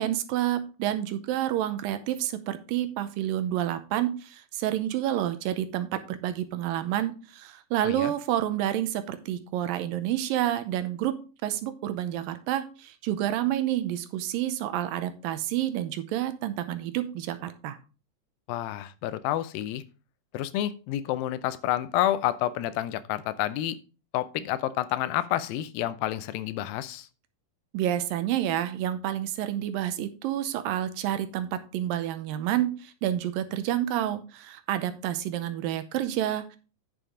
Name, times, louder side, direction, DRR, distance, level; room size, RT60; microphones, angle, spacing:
voice 1, 0.0-11.1 11.4-17.8 27.7-36.6, right 12 dB, 80° right, 11 dB, 2.4 m, -29 dB
voice 2, 18.5-19.8 20.3-23.8 24.1-27.1, left 13 dB, 85° left, 14 dB, 2.4 m, -29 dB
8.9 x 7.0 x 3.7 m, 0.34 s
omnidirectional pair, 4.1 m